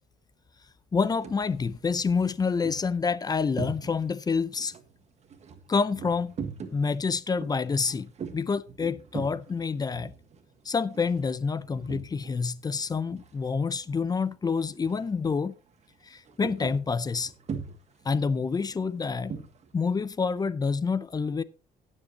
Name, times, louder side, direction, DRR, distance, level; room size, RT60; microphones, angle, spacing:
voice 1, 0.9-4.7 5.7-6.4 6.7-10.1 10.6-15.5 16.0-17.3 18.0-19.3 19.7-21.4, left 5 dB, 25° left, 0.5 m, -28 dB
sound 1, 1.1-1.5 2.0-4.3 4.6-12.5 12.7-13.8 14.1-14.4 14.8-15.2 15.5-19.7, right 6 dB, 40° right, 1.6 m, -41 dB
17.0 x 7.4 x 2.9 m
cardioid pair, 110°, 17 cm